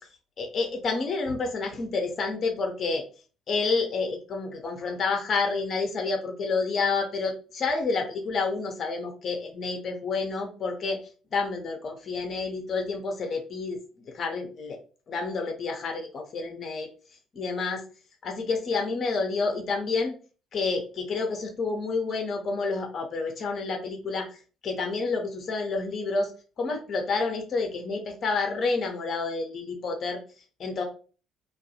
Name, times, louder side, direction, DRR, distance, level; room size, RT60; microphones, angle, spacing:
voice 1, 0.4-3.0 3.5-11.0 11.3-13.8 14.1-14.8 15.1-16.9 17.3-17.8 18.2-20.1 20.5-24.4 24.6-26.3 26.6-30.2 30.6-30.8, left 4 dB, 50° left, 3 dB, 0.6 m, -29 dB
2.2 x 2.2 x 2.7 m, 0.36 s
hypercardioid pair, 55°, 0 cm